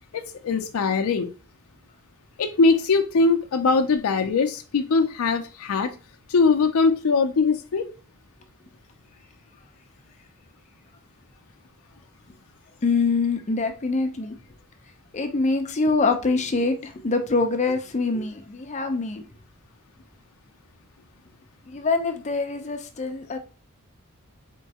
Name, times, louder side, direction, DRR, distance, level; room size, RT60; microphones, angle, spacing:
voice 1, 0.1-1.3 2.4-5.9 6.3-7.9, left 4 dB, 85° left, 0.5 m, -21 dB
voice 2, 12.8-14.4 15.1-19.2 21.7-23.4, left 3 dB, 35° left, 0.5 m, -24 dB
4.4 x 3.1 x 2.8 m
head